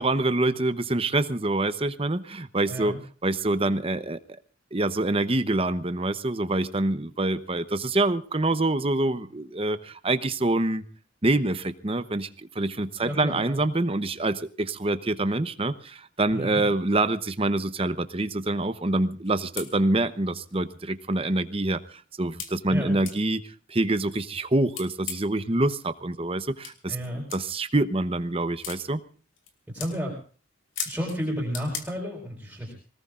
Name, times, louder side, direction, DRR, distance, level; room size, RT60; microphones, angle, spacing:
voice 1, 0.0-3.0 3.2-4.2 4.7-10.8 11.2-12.3 12.5-23.4 23.7-27.0 27.3-29.0, right 2 dB, 25° right, 11 dB, 0.9 m, -26 dB
voice 2, 2.7-3.0 13.0-13.6 16.3-16.7 22.7-23.0 26.9-27.2 29.7-30.2 30.8-32.7, equal, 5° right, -2 dB, 4.8 m, -32 dB
sound 1, 19.2-19.3 19.6-19.7 20.5-20.6 21.1-21.2 22.4-22.5 23.0-23.2 24.7-25.4 26.6-26.8 27.3-27.4 28.6-28.8 29.4-29.5 29.8-29.9 30.8-31.2 31.5-31.8, left 7 dB, 70° left, 2.9 m, -35 dB
25.0 x 19.0 x 2.5 m, 0.40 s
head